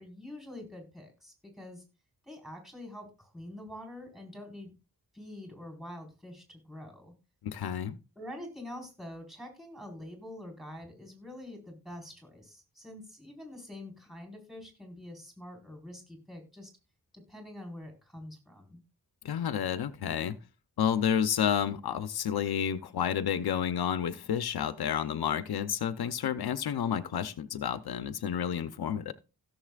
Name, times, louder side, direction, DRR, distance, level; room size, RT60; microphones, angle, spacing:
voice 1, 0.0-1.8 2.2-4.7 5.1-7.1 8.2-16.7 17.1-18.8, left 1 dB, ahead, 4.4 m, -46 dB
voice 2, 7.4-8.0 19.2-20.4 20.8-29.1, left 8 dB, 85° left, 0.7 m, -30 dB
16.5 x 7.1 x 2.4 m
wide cardioid pair, 110°, 37 cm